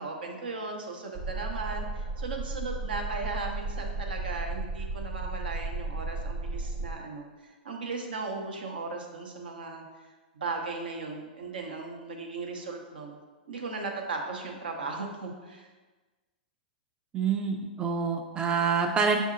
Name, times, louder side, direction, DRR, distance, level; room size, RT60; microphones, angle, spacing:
voice 1, 0.0-13.2 13.5-15.7, right 3 dB, 75° right, 2 dB, 0.7 m, -37 dB
sound 1, 1.1-6.9, right 3 dB, 45° right, 0.9 m, -34 dB
voice 2, 17.1-19.2, right 5 dB, 15° right, 2 dB, 0.3 m, -26 dB
6.4 x 2.6 x 2.5 m, 1.3 s
hypercardioid pair, 110°, 5 cm